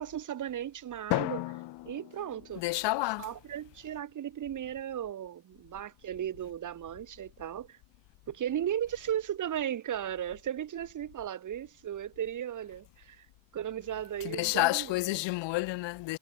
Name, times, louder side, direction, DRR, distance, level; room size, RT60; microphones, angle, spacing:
voice 1, 0.0-1.5 1.8-2.6 3.2-7.8 8.3-13.3 13.5-14.9, right 10 dB, 45° right, 1.5 m, -36 dB
Drum, 1.1-3.4, left 18 dB, 70° left, 0.8 m, -35 dB
voice 2, 2.6-3.3 14.2-16.2, left 21 dB, 90° left, 1.1 m, -30 dB
cardioid pair, 120°, 42 cm